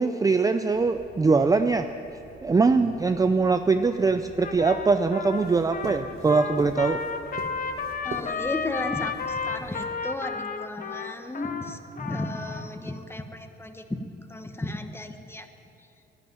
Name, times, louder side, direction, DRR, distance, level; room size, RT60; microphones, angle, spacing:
voice 1, 0.0-1.9 2.4-7.0, right 4 dB, 20° right, 8 dB, 0.4 m, -22 dB
sound 1, 0.7-9.9, right 3 dB, 55° right, 1.6 m, -44 dB
Trumpet, 4.4-12.7, left 5 dB, 45° left, 0.9 m, -33 dB
voice 2, 8.0-14.0 14.3-15.5, left 2 dB, 10° left, 7 dB, 1.1 m, -34 dB
11.5 x 10.5 x 9.2 m, 2.8 s
cardioid pair, 90°, 20 cm